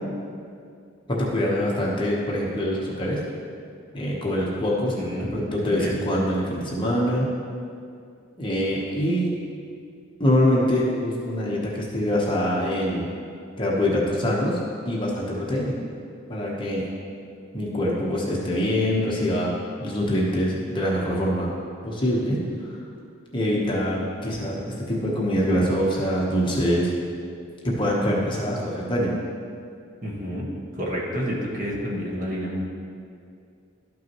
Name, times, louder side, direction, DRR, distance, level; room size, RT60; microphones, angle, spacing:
voice 1, 1.1-3.2 3.9-4.9 5.3-7.3 8.4-9.3 10.2-13.1 13.6-15.7 16.3-16.8 17.5-19.5 19.8-21.5 21.8-22.8 23.3-26.9 27.6-29.1, equal, 25° left, -4 dB, 1.1 m, -24 dB
voice 2, 4.9-5.3 5.6-6.0 30.0-30.5 30.7-32.6, equal, 40° right, -4 dB, 1.4 m, -29 dB
12.0 x 5.9 x 3.0 m, 2.4 s
head